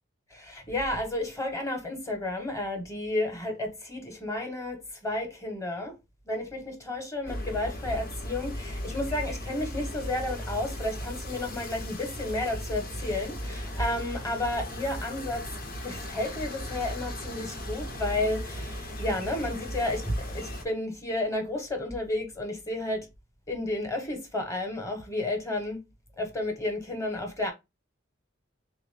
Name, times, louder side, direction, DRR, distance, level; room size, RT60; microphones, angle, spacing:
voice 1, 0.3-6.0 6.2-15.5 15.8-23.1 23.5-25.8 26.2-27.5, left 1 dB, 15° left, 1.0 m, -32 dB
sound 1, 7.2-20.6, equal, 50° left, 0.8 m, -37 dB
3.4 x 2.5 x 3.3 m
head